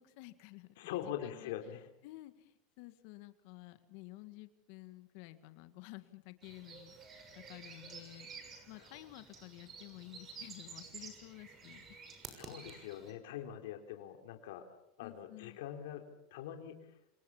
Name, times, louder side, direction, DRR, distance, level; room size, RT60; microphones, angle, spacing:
voice 1, 0.0-1.5 2.0-12.0 15.0-15.6, left 18 dB, 60° left, 11 dB, 1.8 m, -52 dB
voice 2, 0.8-1.9 8.8-8.9 12.3-14.7 15.0-16.0 16.3-17.0, left 11 dB, 80° left, 5 dB, 3.5 m, -43 dB
sound 1, 6.4-13.1, right 5 dB, 30° right, 6.5 m, -51 dB
29.0 x 26.5 x 7.3 m, 0.80 s
supercardioid pair, 135°, 0 cm